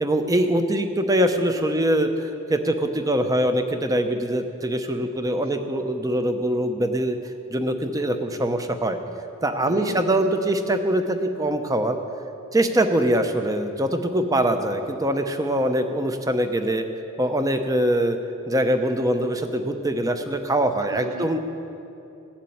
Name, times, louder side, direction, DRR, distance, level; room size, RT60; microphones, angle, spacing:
voice 1, 0.0-7.2 7.5-9.0 9.4-12.0 12.5-16.8 17.2-18.2 18.5-21.4, right 1 dB, 15° right, 7 dB, 0.8 m, -23 dB
voice 2, 9.6-10.3 20.9-21.4, right 3 dB, 85° right, 8 dB, 0.9 m, -37 dB
16.5 x 7.4 x 8.7 m, 2.8 s
head